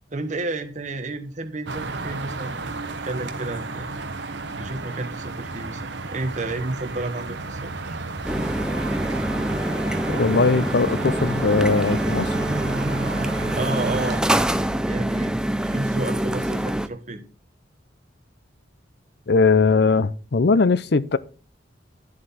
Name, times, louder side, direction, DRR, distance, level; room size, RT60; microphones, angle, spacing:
voice 1, 0.1-3.9 4.6-8.0 8.4-8.5 13.5-14.2 14.8-17.2, right 2 dB, 40° right, 1.2 m, -31 dB
sound 1, 1.7-14.2, right 3 dB, 65° right, 1.1 m, -32 dB
sound 2, 8.2-16.9, right 1 dB, 5° right, 0.5 m, -25 dB
voice 2, 10.1-12.4 19.3-21.2, left 4 dB, 60° left, 0.6 m, -20 dB
10.5 x 7.7 x 4.2 m
head